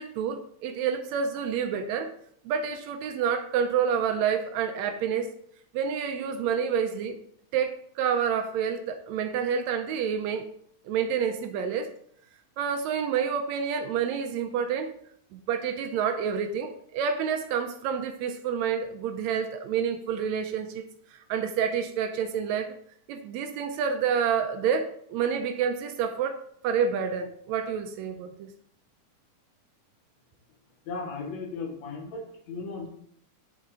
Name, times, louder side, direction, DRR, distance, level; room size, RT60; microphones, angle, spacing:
voice 1, 0.0-2.1 2.4-5.3 5.7-7.2 7.5-10.4 10.8-11.9 12.6-14.9 15.3-20.8 21.1-22.7 23.1-28.5, right 7 dB, 80° right, 6 dB, 1.7 m, -28 dB
voice 2, 30.9-32.9, left 4 dB, 70° left, 0 dB, 2.4 m, -36 dB
6.7 x 4.7 x 3.7 m, 0.65 s
omnidirectional pair, 3.3 m